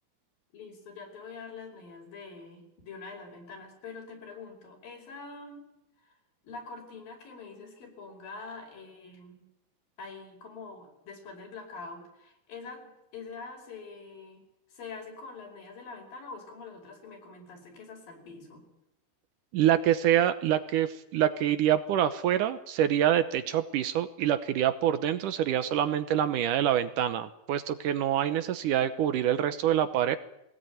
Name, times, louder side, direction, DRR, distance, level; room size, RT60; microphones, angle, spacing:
voice 1, 0.5-5.7 6.0-6.1 6.4-9.4 10.0-14.4 14.7-18.7, left 4 dB, 75° left, 3 dB, 6.7 m, -45 dB
voice 2, 19.5-30.2, right 11 dB, 70° right, 11 dB, 2.3 m, -26 dB
21.5 x 19.0 x 9.3 m, 0.84 s
omnidirectional pair, 4.1 m